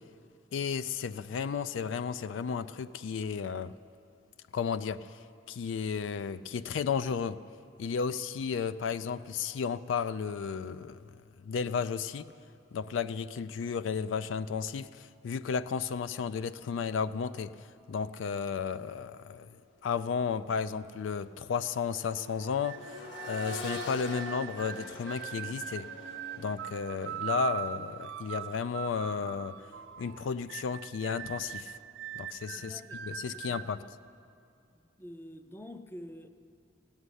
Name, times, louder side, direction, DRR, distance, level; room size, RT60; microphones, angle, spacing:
voice 1, 0.5-3.7 4.5-5.2 5.5-7.4 7.8-11.2 11.4-12.3 12.7-25.9 26.4-29.6 30.0-31.8 32.1-33.8, left 6 dB, 85° left, 0.4 m, -33 dB
Accelerating revving vroom, 19.8-20.0 20.4-30.3 32.0-32.1, left 2 dB, 65° left, 1.7 m, -46 dB
sound 1, 22.1-33.7, right 11 dB, 85° right, 0.5 m, -41 dB
voice 2, 32.6-33.9 34.7-36.3, equal, 10° left, 0.5 m, -48 dB
16.5 x 6.5 x 9.8 m
head